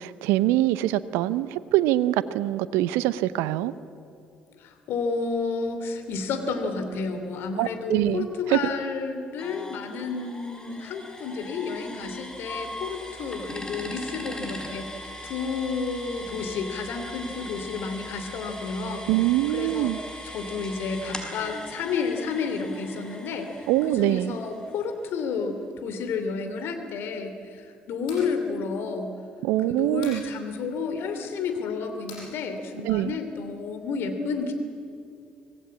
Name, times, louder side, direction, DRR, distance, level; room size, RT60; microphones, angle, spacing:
voice 1, 0.0-3.7 7.6-8.6 19.1-20.0 23.7-24.3 29.4-30.2 32.8-33.1, right 15 dB, 70° right, 16 dB, 0.8 m, -24 dB
voice 2, 4.5-19.1 19.5-19.9 20.2-29.1 29.7-34.5, left 4 dB, 60° left, 7 dB, 3.0 m, -31 dB
sound 1, 9.4-25.1, left 1 dB, 15° left, 5.2 m, -40 dB
sound 2, 28.0-28.3 30.0-30.3 32.1-32.3, left 4 dB, 75° left, 7.2 m, -42 dB
25.0 x 19.0 x 8.6 m, 2.5 s
figure-of-eight pair, 50°, 4 cm